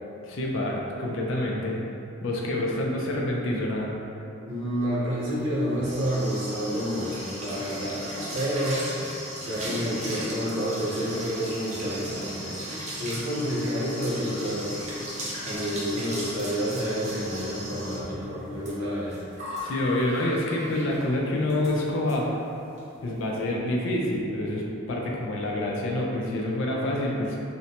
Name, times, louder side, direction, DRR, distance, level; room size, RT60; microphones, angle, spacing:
voice 1, 0.2-1.8 2.2-3.9 19.6-22.3 23.0-27.4, left 1 dB, 70° left, -2 dB, 0.4 m, -27 dB
voice 2, 4.5-8.0 8.3-8.9 9.4-12.6 12.9-15.2 15.4-19.2, equal, 70° right, -8 dB, 0.8 m, -29 dB
sound 1, 5.4-21.1 21.5-21.7 22.1-22.2 22.5-22.8, equal, 35° right, 0.4 m, -37 dB
2.6 x 2.1 x 2.8 m, 2.7 s
head